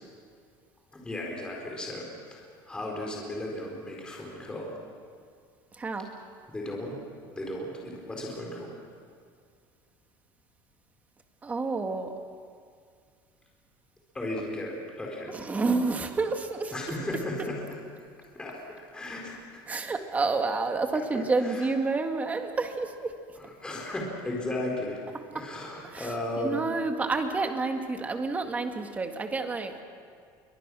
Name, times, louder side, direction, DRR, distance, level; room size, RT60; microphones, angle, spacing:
voice 1, 0.9-4.7 6.5-7.0 7.3-8.7 14.1-15.3 16.7-17.6 18.3-18.6 18.9-19.6 21.1-21.7 23.4-25.0 25.3-26.7, left 1 dB, 10° left, -2 dB, 4.3 m, -35 dB
voice 2, 5.8-6.1 11.4-12.1 15.3-16.7 19.7-23.1 25.3-25.4 25.9-26.1 26.4-29.7, right 3 dB, 15° right, 5 dB, 1.9 m, -29 dB
29.0 x 24.0 x 6.3 m, 2.2 s
cardioid pair, 155°, 9 cm